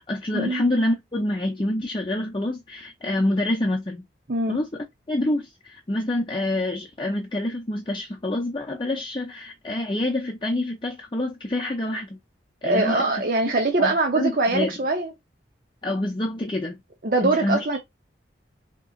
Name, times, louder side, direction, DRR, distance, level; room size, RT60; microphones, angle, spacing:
voice 1, 0.0-4.1 4.5-12.2 12.6-13.2 13.8-14.7 15.8-16.8 17.2-17.7, left 1 dB, 25° left, 0.6 m, -27 dB
voice 2, 4.3-4.6 12.6-15.1 17.0-17.8, right 2 dB, 50° right, 0.7 m, -22 dB
3.3 x 2.9 x 3.8 m
head